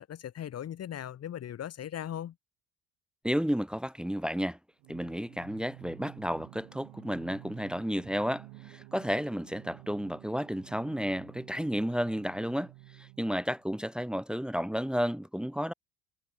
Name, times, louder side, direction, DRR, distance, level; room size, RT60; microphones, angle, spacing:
voice 1, 0.0-2.3, left 10 dB, 45° left, 2.2 m, -38 dB
voice 2, 3.2-4.6 4.9-15.7, equal, ahead, 1.7 m, -32 dB
Singing, 4.8-13.7, right 32 dB, 90° right, 3.3 m, -52 dB
cardioid pair, 110°, 34 cm